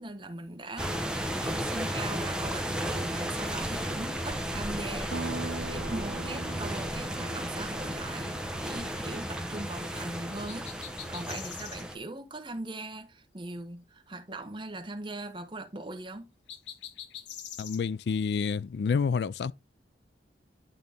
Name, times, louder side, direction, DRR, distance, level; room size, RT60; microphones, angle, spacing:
voice 1, 0.0-5.2 5.7-10.7 11.1-16.3, right 2 dB, 25° right, 1.1 m, -40 dB
sound 1, 0.8-12.0, equal, 5° right, 0.9 m, -34 dB
Acoustic guitar, 5.1-9.9, right 2 dB, 70° right, 0.7 m, -41 dB
sound 2, 10.5-11.9 16.5-17.8, left 9 dB, 90° left, 0.9 m, -43 dB
voice 2, 17.6-19.5, left 5 dB, 65° left, 0.4 m, -28 dB
10.5 x 3.9 x 3.5 m
head